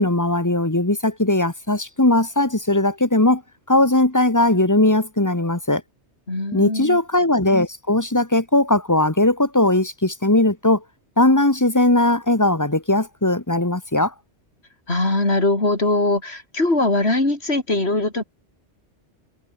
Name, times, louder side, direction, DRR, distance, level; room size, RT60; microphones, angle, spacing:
voice 1, 0.0-3.4 3.7-5.8 6.5-10.8 11.2-14.1, left 1 dB, 15° left, 1.6 m, -19 dB
voice 2, 6.3-7.0 14.9-18.2, left 2 dB, 65° left, 5.1 m, -21 dB
omnidirectional pair, 1.2 m